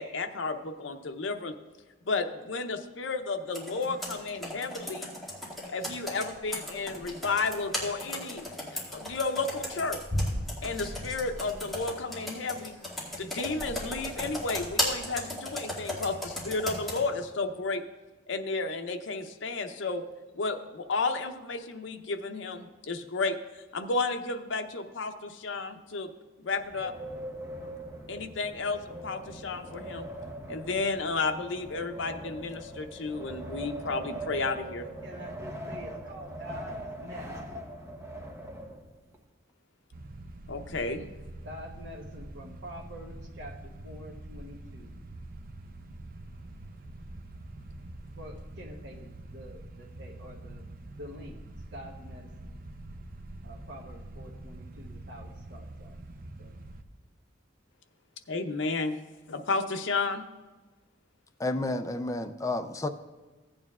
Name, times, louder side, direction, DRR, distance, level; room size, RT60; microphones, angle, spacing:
voice 1, 0.0-1.5 2.1-5.1 5.7-10.0 10.6-12.7 13.2-17.8 18.3-20.0 20.3-23.4 23.7-26.1 26.4-26.9 28.1-30.1 30.5-34.9 40.5-41.1 58.3-59.0 59.3-60.2, left 3 dB, 75° left, 6 dB, 0.7 m, -32 dB
Computer keyboard, 3.5-17.0, left 1 dB, ahead, 2.1 m, -36 dB
Wind, 26.5-39.2, right 1 dB, 15° right, 1.0 m, -41 dB
voice 2, 34.8-37.4 41.4-44.9 48.2-50.6 51.0-51.3 51.7-52.5 53.4-56.0 56.4-56.6, equal, 65° right, -1 dB, 1.1 m, -46 dB
sound 1, 39.9-56.8, right 1 dB, 50° right, 0.6 m, -45 dB
voice 3, 61.4-62.9, left 2 dB, 15° left, 8 dB, 0.4 m, -31 dB
15.5 x 8.8 x 2.4 m, 1.3 s
head